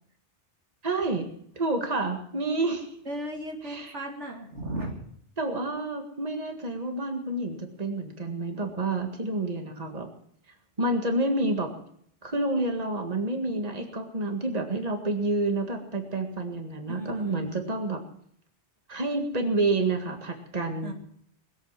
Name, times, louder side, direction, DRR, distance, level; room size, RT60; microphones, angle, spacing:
voice 1, 0.8-1.3 1.6-2.9 3.6-3.9 5.4-10.1 10.8-11.7 12.2-18.0 18.9-20.9, right 2 dB, 35° right, 4 dB, 2.0 m, -29 dB
voice 2, 3.1-5.1 16.9-17.5 20.8-20.9, right 1 dB, 85° right, 1 dB, 2.9 m, -35 dB
20.5 x 8.7 x 7.5 m, 0.65 s
omnidirectional pair, 1.2 m